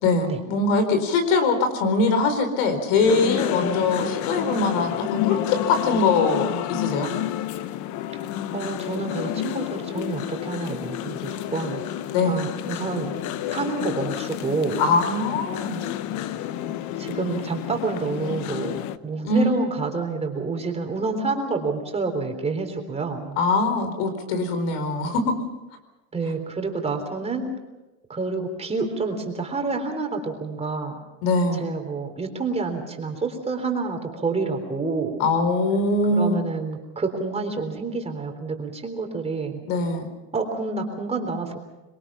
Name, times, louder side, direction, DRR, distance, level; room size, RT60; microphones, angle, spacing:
voice 1, 0.0-7.1 12.1-12.4 14.8-15.8 19.2-19.6 23.4-25.3 31.2-31.6 35.2-36.4 39.7-40.1, left 3 dB, 75° left, 9 dB, 4.5 m, -22 dB
sound 1, 3.0-19.0, left 12 dB, 50° left, 0.9 m, -30 dB
voice 2, 8.5-11.8 12.2-13.2 13.5-14.8 17.0-23.4 26.1-27.5 28.1-31.0 31.6-35.2 36.1-39.6 40.3-41.6, right 4 dB, 15° right, 3 dB, 3.6 m, -28 dB
26.0 x 22.0 x 5.8 m, 1.1 s
supercardioid pair, 135°, 39 cm